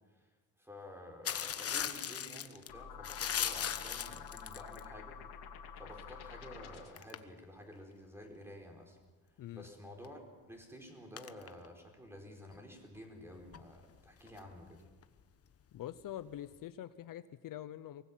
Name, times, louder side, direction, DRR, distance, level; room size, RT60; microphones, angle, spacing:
voice 1, 0.0-5.2 5.8-9.0 9.3-10.2 10.5-14.8, equal, 5° right, 2 dB, 4.6 m, -51 dB
sound 1, 1.3-2.7 3.0-4.9 7.0-7.2 10.0-10.1 11.2-11.7 12.5-12.6 13.0-13.1 13.4-15.2 16.3-16.4, left 8 dB, 40° left, 1.1 m, -38 dB
sound 2, 2.7-7.1, left 7 dB, 90° left, 2.7 m, -49 dB
voice 2, 15.7-18.1, left 12 dB, 60° left, 13 dB, 0.8 m, -45 dB
24.0 x 19.5 x 7.4 m, 1.3 s
cardioid pair, 130°, 37 cm